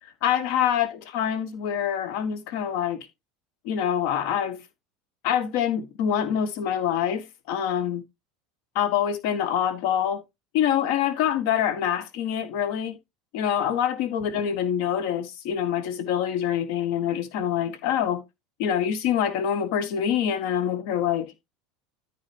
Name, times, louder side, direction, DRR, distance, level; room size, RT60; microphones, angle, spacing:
voice 1, 0.2-3.1 3.6-4.6 5.2-8.0 8.8-10.2 10.5-13.0 13.3-18.2 18.6-21.3, left 9 dB, 60° left, 1.8 m, -25 dB
13.5 x 4.9 x 2.9 m
figure-of-eight pair, 75°, 0 cm